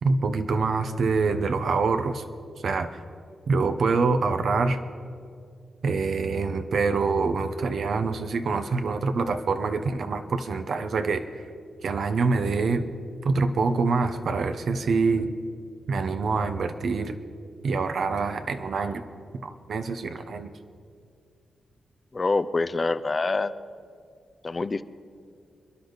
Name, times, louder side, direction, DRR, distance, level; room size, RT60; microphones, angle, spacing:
voice 1, 0.0-2.2 2.6-3.0 3.5-4.8 5.8-11.2 11.8-12.9 13.2-15.3 15.9-17.2 17.6-19.1 19.4-20.5, right 4 dB, 70° right, 8 dB, 1.0 m, -25 dB
voice 2, 22.1-23.5 24.4-24.8, left 3 dB, 35° left, 12 dB, 0.6 m, -25 dB
27.5 x 10.5 x 4.1 m, 2.2 s
cardioid pair, 70°, 0 cm